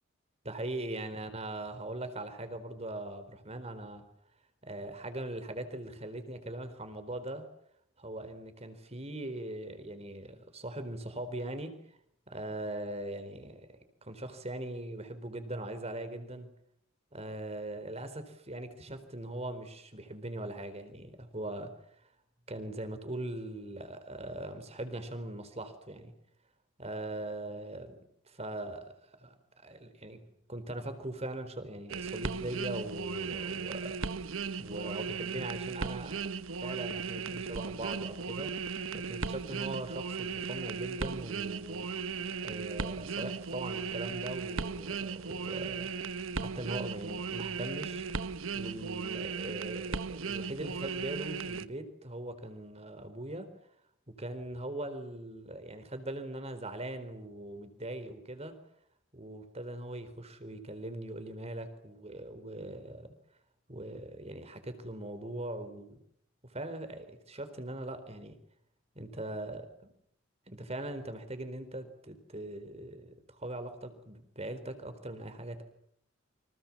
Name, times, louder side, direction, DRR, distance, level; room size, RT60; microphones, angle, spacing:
voice 1, 0.4-4.1 4.6-7.4 8.0-11.7 12.3-16.5 17.1-21.7 22.5-26.1 26.8-28.0 28.2-30.2 30.5-34.0 34.6-36.2 36.6-38.5 38.9-41.9 42.4-45.9 46.4-53.5 54.1-58.6 59.1-63.1 63.7-66.0 66.4-68.4 68.9-69.9 70.5-75.6, right 1 dB, 30° right, 10 dB, 4.2 m, -41 dB
sound 1, 31.9-51.7, right 5 dB, 90° right, 1.0 m, -37 dB
29.0 x 26.0 x 7.4 m, 0.71 s
head